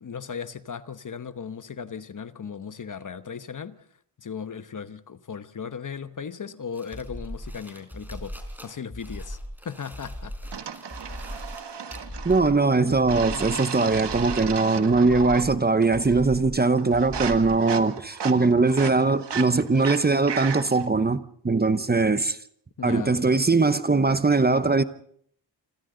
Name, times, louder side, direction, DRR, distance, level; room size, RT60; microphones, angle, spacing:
voice 1, 0.0-3.8 4.2-8.3 8.6-10.8 22.8-23.1, left 6 dB, 45° left, 1.0 m, -37 dB
sound 1, 6.7-12.5, equal, 5° right, 4.2 m, -51 dB
sound 2, 6.9-7.5 7.9-8.5 8.9-9.5 9.9-10.5 10.9-11.5 11.9-12.5 12.9-13.5 13.9-14.5 14.9-15.5 15.9-16.5 16.9-17.6, equal, 10° left, 5.7 m, -38 dB
sound 3, 10.5-12.6 13.1-15.5 15.8-16.3 16.6-20.9, right 7 dB, 75° right, 1.5 m, -35 dB
voice 2, 12.2-22.4 22.8-24.8, right 3 dB, 25° right, 0.8 m, -21 dB
28.0 x 26.0 x 3.9 m
wide cardioid pair, 130°, 42 cm